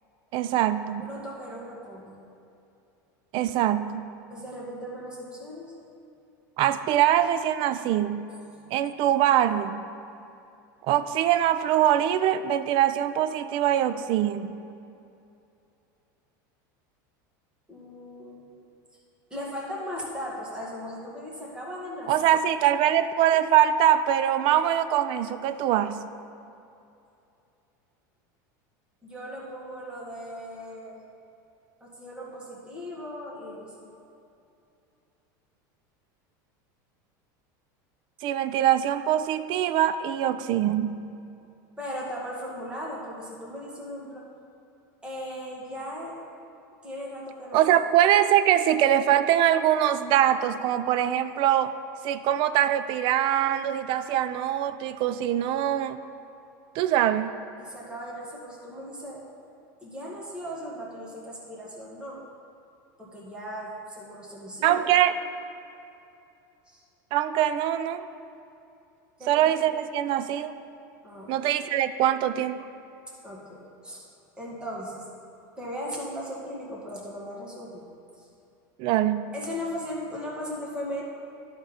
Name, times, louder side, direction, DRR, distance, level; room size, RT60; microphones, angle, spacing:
voice 1, 0.3-1.1 3.3-4.2 6.6-8.3 8.7-9.8 10.9-14.6 22.1-26.0 38.2-41.0 47.5-51.7 52.0-56.0 56.8-57.4 64.6-65.1 67.1-68.1 69.3-70.5 71.3-72.6 78.8-79.3, right 11 dB, 50° right, 12 dB, 0.4 m, -23 dB
voice 2, 1.0-2.2 4.3-5.7 17.7-18.6 19.3-22.1 29.0-31.0 31.8-33.9 41.8-44.3 45.0-46.2 46.8-47.6 57.6-59.2 59.8-62.2 63.0-64.8 66.7-66.8 69.2-69.5 71.0-71.4 73.2-74.0 74.4-75.0 75.6-77.8 78.2-78.3 79.3-81.0, equal, 10° right, -5 dB, 1.9 m, -37 dB
11.5 x 3.8 x 5.6 m, 2.7 s
supercardioid pair, 120°, 11 cm